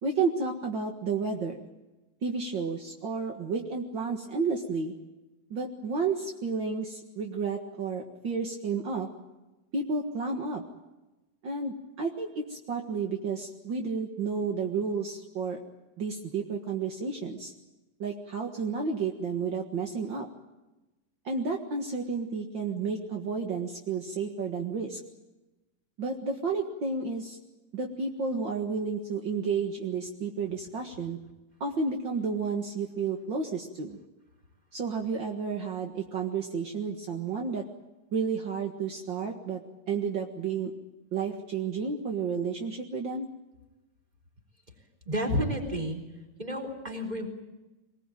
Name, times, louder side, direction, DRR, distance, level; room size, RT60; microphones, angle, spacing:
voice 1, 0.0-1.6 2.2-4.9 5.5-9.1 9.7-10.6 11.4-15.6 16.0-17.5 18.0-20.3 21.2-25.0 26.0-27.4 27.7-31.2 31.6-34.0 34.7-37.6 38.1-39.6 39.9-40.7 41.1-43.3, right 5 dB, 55° right, 2 dB, 1.3 m, -31 dB
voice 2, 45.1-46.0 46.4-47.3, equal, 10° right, 3 dB, 3.4 m, -30 dB
23.5 x 20.5 x 9.1 m, 1.0 s
omnidirectional pair, 4.7 m